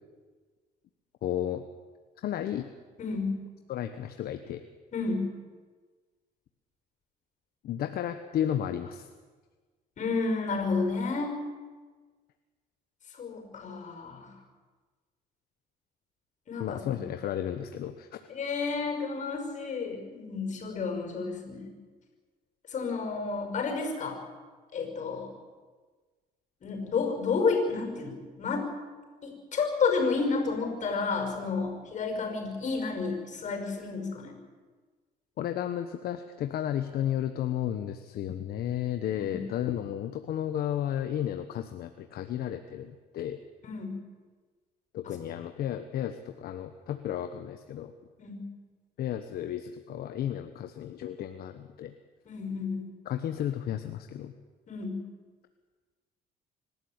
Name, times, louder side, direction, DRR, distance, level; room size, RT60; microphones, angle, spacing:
voice 1, 1.2-1.6 2.2-2.7 3.7-4.6 7.6-9.1 16.6-18.2 35.4-43.4 44.9-47.9 49.0-51.9 53.1-54.4, left 10 dB, 65° left, 8 dB, 1.1 m, -33 dB
voice 2, 3.0-3.4 4.9-5.3 10.0-11.3 13.1-14.3 16.5-17.0 18.3-21.7 22.7-24.2 24.7-25.3 26.6-28.7 29.2-34.3 39.1-39.4 43.6-44.0 45.0-45.1 48.2-48.4 52.3-52.9 54.7-55.0, left 4 dB, 45° left, 5 dB, 5.7 m, -31 dB
25.5 x 12.5 x 8.8 m, 1.4 s
cardioid pair, 110°, 17 cm